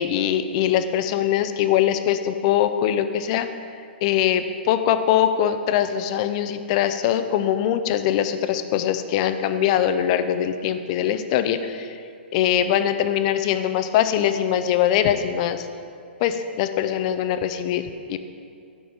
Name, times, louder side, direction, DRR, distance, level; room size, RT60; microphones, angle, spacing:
voice 1, 0.0-3.5 4.0-12.0 12.3-15.7 16.2-18.2, left 10 dB, 35° left, 10 dB, 0.4 m, -22 dB
8.4 x 4.0 x 6.0 m, 2.4 s
hypercardioid pair, 150°, 6 cm